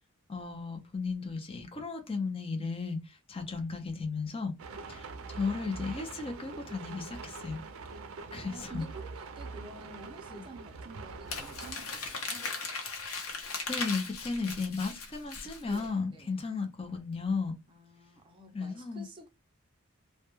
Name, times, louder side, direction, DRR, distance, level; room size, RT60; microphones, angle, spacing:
voice 1, 0.3-4.5 4.9-7.6 8.3-8.8 10.3-10.5 13.7-17.5 18.5-19.1, left 4 dB, 25° left, 0.5 m, -35 dB
sound 1, 4.6-11.7, right 4 dB, 75° right, 0.4 m, -44 dB
voice 2, 8.4-12.5 14.3-14.6 15.6-16.4 17.7-19.3, right 2 dB, 25° right, 0.6 m, -50 dB
Crumpling crinkling, 11.3-15.9, left 4 dB, 90° left, 0.8 m, -38 dB
2.2 x 2.1 x 2.9 m
head